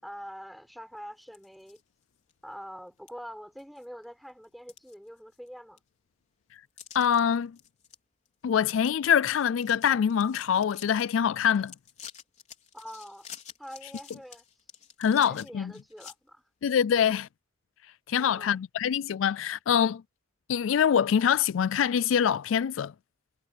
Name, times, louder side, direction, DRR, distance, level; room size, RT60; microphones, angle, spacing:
voice 1, 0.0-1.8 2.4-5.8 12.7-13.3 13.6-14.4 15.2-16.4 18.2-18.6, equal, ahead, 4.6 m, -45 dB
sound 1, 1.2-1.8 2.3-2.4 3.1-3.2 3.6-4.0 4.4-5.5 5.8-5.9 6.8-7.2 7.6-8.0 8.3-8.4 8.6-8.9 9.2-11.0 11.5-16.1, left 8 dB, 40° left, 4.3 m, -48 dB
voice 2, 6.9-7.5 8.4-11.7 15.0-15.7 16.6-17.3 18.1-20.0 20.5-22.9, left 8 dB, 80° left, 0.4 m, -24 dB
head